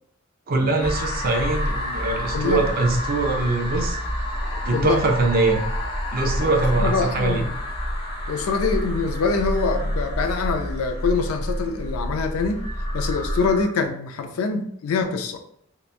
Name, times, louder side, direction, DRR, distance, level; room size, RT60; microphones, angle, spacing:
voice 1, 0.5-4.0 4.6-5.6 6.1-7.5, right 3 dB, 45° right, 1 dB, 0.4 m, -22 dB
sound 1, 0.8-13.6, equal, 25° left, 0.6 m, -28 dB
voice 2, 2.3-2.7 4.7-5.1 6.4-7.5 8.3-12.6 12.9-15.4, left 4 dB, 85° left, 6 dB, 0.3 m, -25 dB
2.8 x 2.1 x 2.4 m, 0.69 s
head